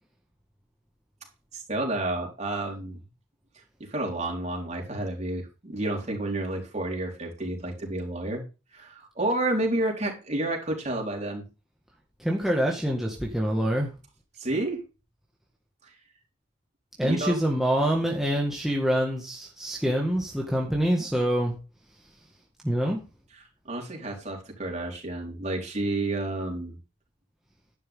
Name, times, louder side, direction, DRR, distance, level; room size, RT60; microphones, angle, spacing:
voice 1, 1.5-3.0 3.8-8.4 8.7-11.4 14.4-14.8 17.0-17.4 23.7-26.8, right 2 dB, 40° right, 0 dB, 4.2 m, -30 dB
voice 2, 12.2-13.9 17.0-21.5 22.6-23.0, equal, ahead, -1 dB, 1.9 m, -25 dB
11.0 x 10.0 x 3.7 m, 0.31 s
head